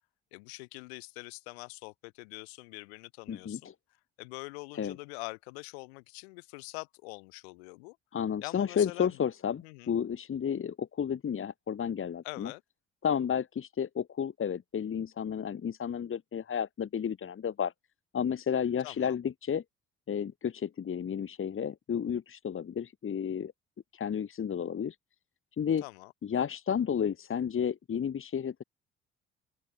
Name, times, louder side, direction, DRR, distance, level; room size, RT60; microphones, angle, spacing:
voice 1, 0.3-3.7 4.2-8.0 8.4-9.2 9.6-9.9 12.2-12.6 18.8-19.2 25.8-26.1, left 28 dB, 75° left, 4.9 m, -44 dB
voice 2, 3.3-3.7 4.8-5.0 8.1-12.5 13.0-17.7 18.1-19.6 20.1-23.5 23.9-25.0 25.6-25.8 26.2-28.6, left 8 dB, 40° left, 1.9 m, -32 dB
open air
hypercardioid pair, 50°, 32 cm